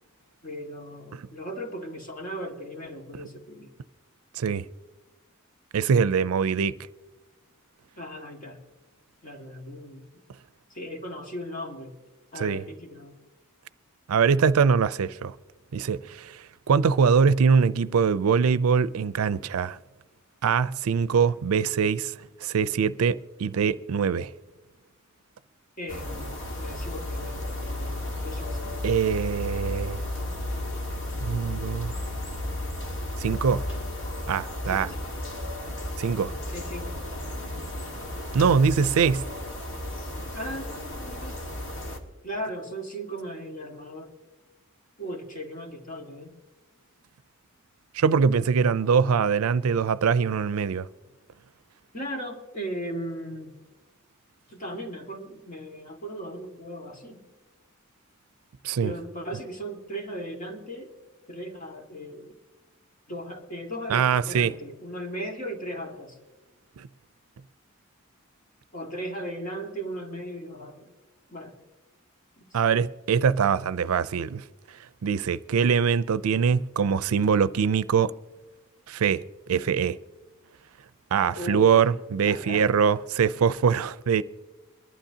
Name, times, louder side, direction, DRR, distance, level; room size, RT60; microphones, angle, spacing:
voice 1, 0.4-3.7 8.0-8.6 9.2-10.0 10.7-12.0 12.3-13.2 25.8-28.6 34.7-35.1 36.5-36.9 40.3-41.4 42.2-44.1 45.0-46.3 51.9-53.6 54.5-57.3 58.8-60.9 61.3-62.4 63.1-66.2 68.7-70.9 71.3-71.6 72.4-72.6 81.3-81.9 82.2-82.7, equal, 40° left, 1.9 m, -37 dB
voice 2, 4.3-4.7 5.7-6.8 12.4-12.6 14.1-15.4 15.7-19.8 20.4-24.3 28.8-30.0 31.2-32.0 33.2-33.6 34.3-34.9 36.0-36.3 38.3-39.2 47.9-50.9 58.6-58.9 63.9-64.5 66.8-66.9 72.5-74.4 75.0-78.1 78.9-80.0 81.1-84.2, right 6 dB, 90° right, 0.4 m, -23 dB
sound 1, 25.9-42.0, left 1 dB, 65° left, 1.7 m, -33 dB
22.5 x 11.5 x 2.8 m
head